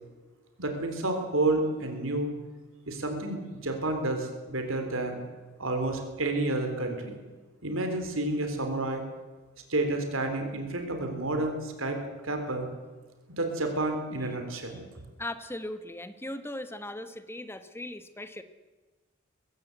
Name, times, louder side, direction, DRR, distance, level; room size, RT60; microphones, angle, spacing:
voice 1, 0.6-2.3 2.9-5.2 5.6-7.2 7.6-9.0 9.7-12.0 12.2-12.7 13.4-14.8, right 2 dB, 75° right, 5 dB, 3.8 m, -30 dB
voice 2, 15.2-18.4, left 1 dB, 10° left, 10 dB, 1.3 m, -38 dB
22.0 x 16.5 x 8.1 m, 1.3 s
head